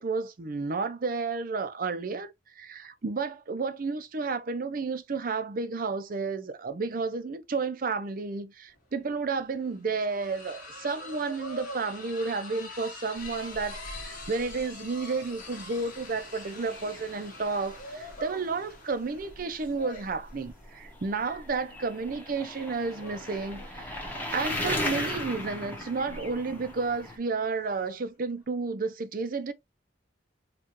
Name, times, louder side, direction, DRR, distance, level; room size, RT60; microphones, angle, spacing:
voice 1, 0.0-24.0 24.3-29.5, right 4 dB, 50° right, 0.5 m, -32 dB
sound 1, 8.7-8.8 9.1-27.9, left 2 dB, 50° left, 1.5 m, -45 dB
sound 2, 13.2-27.2, left 1 dB, 10° left, 1.0 m, -39 dB
4.5 x 2.4 x 2.9 m
head